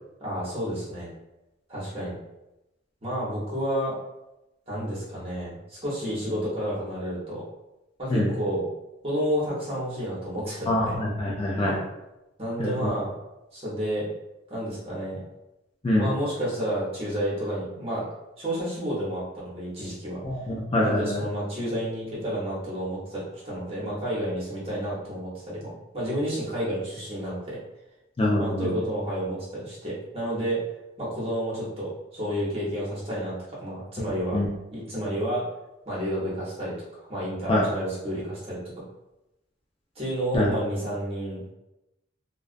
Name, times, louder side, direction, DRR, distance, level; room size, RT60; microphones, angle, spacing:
voice 1, 0.2-1.1 1.7-2.2 3.0-3.9 4.7-7.4 8.0-8.7 9.0-11.0 11.6-11.8 12.4-13.1 13.5-14.1 14.5-15.2 15.9-18.1 18.4-20.2 20.8-27.6 28.4-30.6 31.0-34.4 34.7-35.4 35.9-38.8 39.9-41.5, equal, 30° right, -7 dB, 0.9 m, -30 dB
voice 2, 10.7-11.8 12.6-12.9 15.8-16.1 20.2-21.2 28.2-28.7 34.3-34.5 37.5-37.6 40.3-40.5, left 1 dB, 30° left, -3 dB, 0.3 m, -24 dB
2.3 x 2.2 x 2.4 m, 0.94 s
head